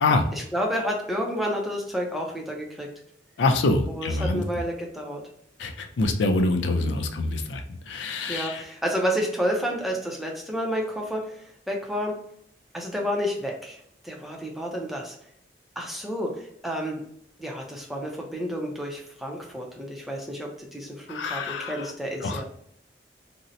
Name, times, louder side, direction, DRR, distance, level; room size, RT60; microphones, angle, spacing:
voice 1, 0.3-2.9 3.9-5.2 8.3-12.1 12.7-15.2 15.8-17.0 17.4-22.4, equal, ahead, -1 dB, 0.5 m, -30 dB
voice 2, 3.4-4.4 5.6-8.6 21.1-21.9 22.2-22.4, left 2 dB, 85° left, 5 dB, 0.4 m, -25 dB
2.7 x 2.0 x 3.8 m, 0.68 s
head